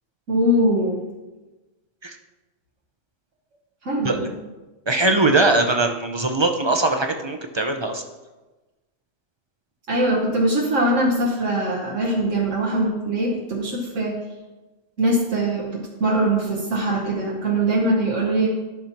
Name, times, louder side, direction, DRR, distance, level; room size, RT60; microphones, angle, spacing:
voice 1, 0.3-1.0 3.8-4.3 9.9-14.2 15.0-18.5, right 1 dB, 75° right, -2 dB, 1.4 m, -22 dB
voice 2, 4.9-8.0, right 2 dB, 45° right, 5 dB, 0.3 m, -21 dB
12.5 x 5.8 x 2.9 m, 1.2 s
omnidirectional pair, 1.3 m